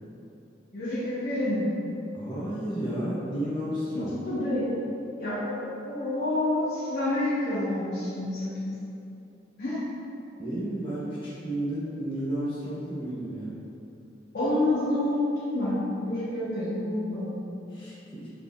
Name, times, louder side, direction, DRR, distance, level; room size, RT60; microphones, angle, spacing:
voice 1, 0.7-1.7 3.9-4.8 5.2-8.7 9.6-9.8 14.3-17.4, left 1 dB, 60° left, -12 dB, 0.9 m, -28 dB
voice 2, 2.1-4.1 10.4-13.5 17.7-18.3, right 1 dB, 25° left, -10 dB, 1.2 m, -32 dB
4.4 x 3.4 x 2.3 m, 2.7 s
head